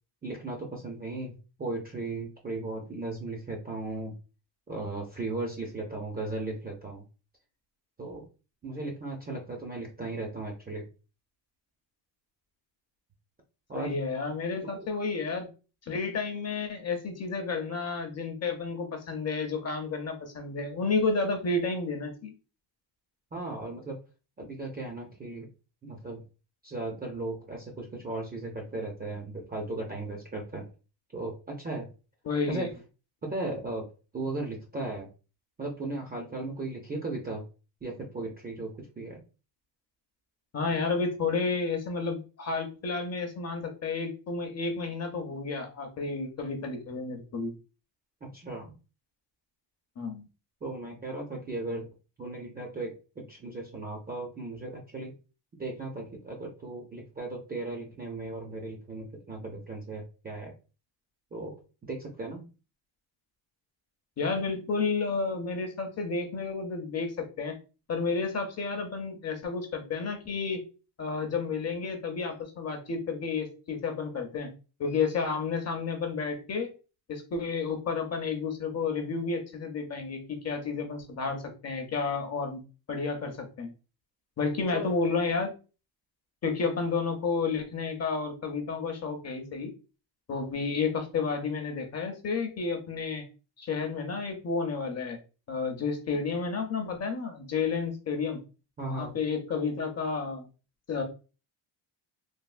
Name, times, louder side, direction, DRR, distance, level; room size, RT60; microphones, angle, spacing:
voice 1, 0.2-4.1 4.7-7.0 8.0-8.3 8.6-10.9 13.7-14.0 14.6-14.9 23.3-24.0 24.4-25.5 25.8-26.2 26.6-30.7 31.1-31.9 32.5-32.7 33.2-35.1 35.6-37.4 37.8-39.2 48.2-48.7 50.6-55.1 55.6-60.5 61.3-62.4 84.7-84.9 98.8-99.1, right 2 dB, 20° right, 0 dB, 0.4 m, -36 dB
voice 2, 13.8-15.5 15.8-22.3 32.2-32.7 40.5-47.5 50.0-50.3 64.2-67.5 67.9-70.6 71.0-74.5 74.8-76.7 77.1-82.6 82.9-83.7 84.4-85.5 86.4-89.7 90.3-93.2 93.6-95.2 95.5-98.4 98.8-100.5 100.9-101.0, left 4 dB, 35° left, 4 dB, 0.5 m, -31 dB
3.4 x 2.3 x 2.4 m, 0.32 s
cardioid pair, 170°, 47 cm